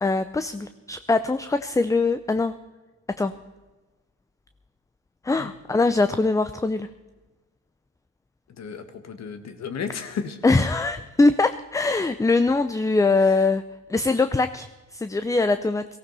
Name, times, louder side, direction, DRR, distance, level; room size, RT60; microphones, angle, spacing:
voice 1, 0.0-2.6 3.2-3.3 5.2-6.9 10.4-13.6 13.9-15.9, left 3 dB, 10° left, 11 dB, 0.5 m, -22 dB
voice 2, 8.6-10.4 13.3-13.4, left 6 dB, 60° left, 9 dB, 1.6 m, -33 dB
17.5 x 15.5 x 4.1 m, 1.2 s
cardioid pair, 90°, 30 cm